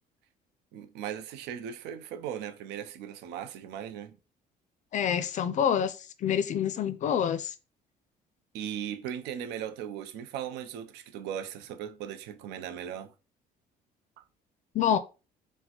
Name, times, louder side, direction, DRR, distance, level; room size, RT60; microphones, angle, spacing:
voice 1, 0.7-4.2 8.5-13.1, right 9 dB, 90° right, 0.5 m, -38 dB
voice 2, 4.9-7.5 14.7-15.0, left 8 dB, 45° left, 0.4 m, -27 dB
4.0 x 2.1 x 2.9 m
cardioid pair, 110°, 17 cm